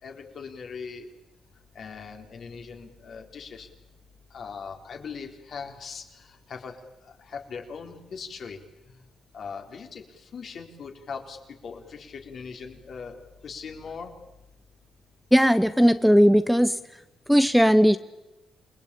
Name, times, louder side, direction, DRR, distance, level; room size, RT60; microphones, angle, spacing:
voice 1, 0.0-1.1 1.8-3.7 4.3-6.8 7.2-8.6 9.3-10.0 10.3-11.4 11.6-14.1, left 5 dB, 55° left, 3 dB, 4.2 m, -40 dB
voice 2, 15.3-16.8 17.3-18.0, equal, ahead, 12 dB, 0.8 m, -18 dB
28.5 x 20.5 x 8.7 m, 1.0 s
cardioid pair, 110°, 0 cm